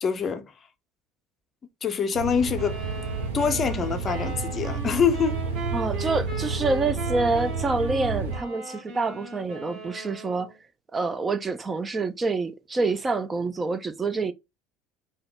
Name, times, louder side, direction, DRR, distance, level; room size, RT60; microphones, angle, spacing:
voice 1, 0.0-0.5 1.8-2.8 3.3-5.4, left 6 dB, 35° left, 0.5 m, -25 dB
sound 1, 2.1-8.4, right 4 dB, 80° right, 0.8 m, -31 dB
sound 2, 2.6-10.6, right 2 dB, 50° right, 0.9 m, -38 dB
voice 2, 5.7-10.5 10.9-14.3, right 3 dB, 25° right, 0.3 m, -27 dB
2.7 x 2.0 x 3.2 m
figure-of-eight pair, 65°, 0 cm